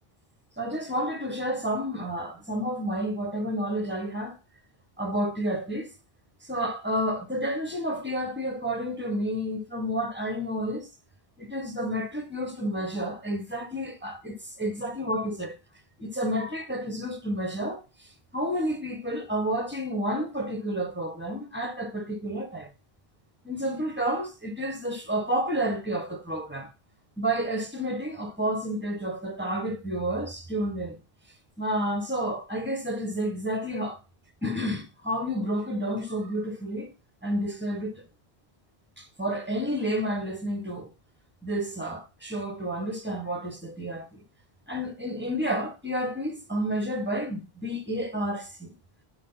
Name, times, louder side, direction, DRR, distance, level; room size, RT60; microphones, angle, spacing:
voice 1, 0.6-4.4 5.0-5.9 6.4-10.9 11.4-15.6 16.0-22.7 23.4-26.7 27.2-31.0 31.6-34.0 34.4-36.9 37.2-38.0 39.0-40.9 41.4-44.2 44.7-48.7, equal, 10° right, 1.4 m, -30 dB
6.6 x 5.6 x 5.7 m
omnidirectional pair, 1.1 m